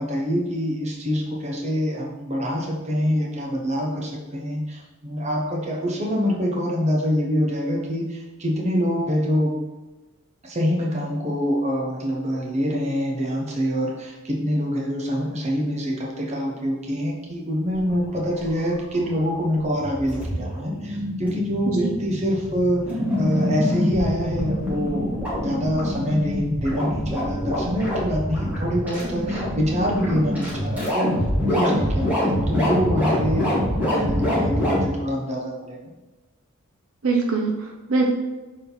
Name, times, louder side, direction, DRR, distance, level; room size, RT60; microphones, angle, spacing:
voice 1, 0.0-9.6 10.4-31.2 31.5-35.9, equal, 30° right, -2 dB, 1.1 m, -25 dB
sound 1, 17.7-34.9, equal, 5° right, 1.8 m, -25 dB
voice 2, 37.0-38.1, right 3 dB, 70° right, 1 dB, 0.8 m, -23 dB
6.9 x 3.8 x 3.9 m, 1.1 s
head